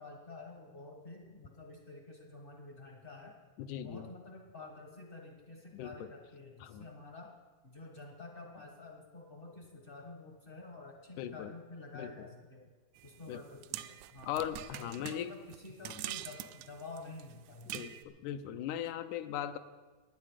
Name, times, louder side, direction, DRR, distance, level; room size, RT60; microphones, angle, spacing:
voice 1, 0.0-3.4 3.8-7.3 7.6-12.7 13.0-14.3 14.8-18.0, left 3 dB, 45° left, 1 dB, 0.7 m, -49 dB
voice 2, 3.6-4.1 5.7-6.1 6.6-6.9 11.2-11.5 11.9-12.3 13.3-13.4 14.3-15.3 15.9-16.0 17.7-17.9 18.2-19.6, left 10 dB, 85° left, 10 dB, 2.1 m, -39 dB
sound 1, 12.9-18.0, right 14 dB, 80° right, 1.9 m, -45 dB
16.5 x 9.8 x 5.0 m, 1.3 s
omnidirectional pair, 3.5 m